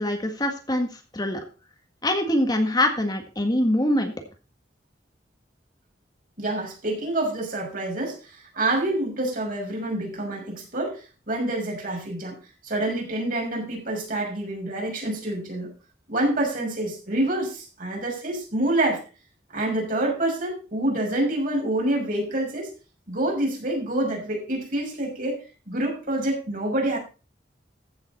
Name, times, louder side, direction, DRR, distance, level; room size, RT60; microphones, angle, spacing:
voice 1, 0.0-1.4 2.0-4.1, left 1 dB, 20° left, 4 dB, 1.7 m, -24 dB
voice 2, 6.4-11.0 11.3-12.4 12.6-15.7 16.1-19.0 19.5-22.7 23.1-27.0, right 1 dB, 50° right, 0 dB, 6.1 m, -27 dB
15.0 x 7.5 x 4.2 m, 0.33 s
head